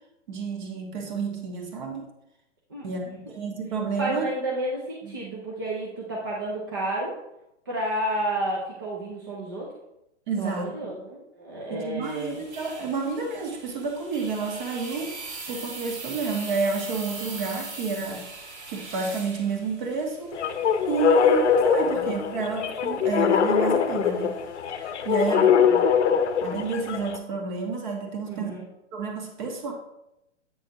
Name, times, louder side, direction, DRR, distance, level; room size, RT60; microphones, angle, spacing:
voice 1, 0.3-2.1 2.8-4.3 5.0-5.2 10.3-10.7 11.7-15.1 15.5-18.3 18.7-20.4 20.9-24.4 24.8-25.7 26.4-28.5 28.9-29.7, right 4 dB, 40° right, 2 dB, 1.4 m, -30 dB
voice 2, 4.0-7.2 7.7-9.7 10.4-12.4 21.8-22.3 25.1-26.2 28.3-28.6, right 1 dB, 20° right, -4 dB, 0.4 m, -31 dB
sound 1, 12.0-26.7, right 3 dB, 60° right, 2.0 m, -42 dB
sound 2, 20.3-27.2, left 7 dB, 65° left, 0.7 m, -22 dB
8.1 x 6.2 x 2.9 m, 0.87 s
hypercardioid pair, 165°, 37 cm